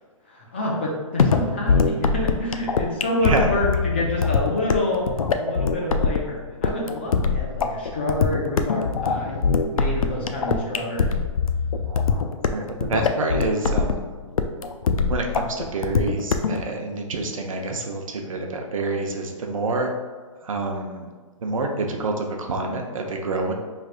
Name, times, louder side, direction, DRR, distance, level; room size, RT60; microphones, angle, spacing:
voice 1, 0.3-9.4 9.7-11.1, left 1 dB, 20° left, -3 dB, 0.4 m, -27 dB
sound 1, 1.2-16.6, left 5 dB, 90° left, 0.4 m, -23 dB
voice 2, 11.8-12.2 12.5-14.1 15.1-19.9 20.4-21.1 21.4-23.5, right 3 dB, 70° right, 2 dB, 0.7 m, -27 dB
4.7 x 3.3 x 2.4 m, 1.4 s
hypercardioid pair, 170°, 17 cm